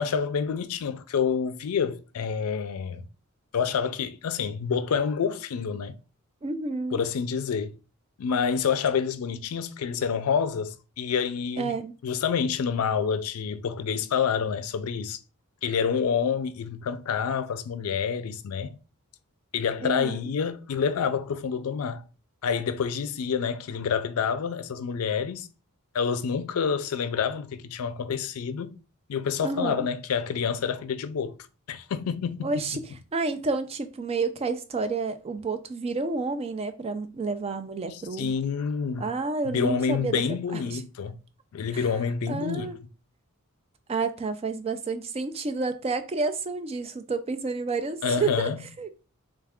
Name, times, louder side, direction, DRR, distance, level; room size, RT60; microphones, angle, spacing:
voice 1, 0.0-3.1 3.5-6.0 6.9-7.7 8.2-11.8 12.0-15.2 15.6-18.8 19.5-22.0 22.4-25.5 25.9-28.8 29.1-31.4 31.7-32.6 37.9-39.1 39.4-41.2 41.5-42.7 48.0-48.6, left 6 dB, 80° left, 0.4 m, -28 dB
voice 2, 6.4-7.0 11.6-11.9 19.8-20.2 29.4-29.9 32.4-32.8 33.1-38.3 39.0-40.2 40.5-40.8 42.3-42.8 43.9-48.5 48.8-49.0, right 4 dB, 25° right, 0.3 m, -30 dB
3.3 x 2.4 x 3.4 m
head